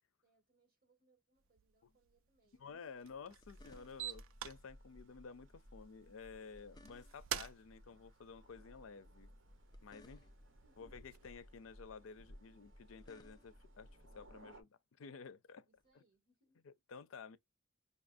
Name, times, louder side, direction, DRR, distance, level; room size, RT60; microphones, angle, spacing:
voice 1, 0.2-3.1 10.0-10.9 15.6-16.7, right 2 dB, 45° right, 2.2 m, -77 dB
sound 1, 1.4-11.3, right 10 dB, 85° right, 0.4 m, -52 dB
voice 2, 2.6-9.3 9.8-10.2 10.8-13.9 14.1-15.7 15.9-16.0 16.6-17.4, left 5 dB, 85° left, 0.5 m, -53 dB
sound 2, 3.1-14.6, right 5 dB, 70° right, 1.0 m, -56 dB
sound 3, 3.3-4.3 6.3-7.5 9.4-10.6 12.6-13.8 15.8-15.9, left 2 dB, 20° left, 0.4 m, -65 dB
5.3 x 2.4 x 2.5 m
head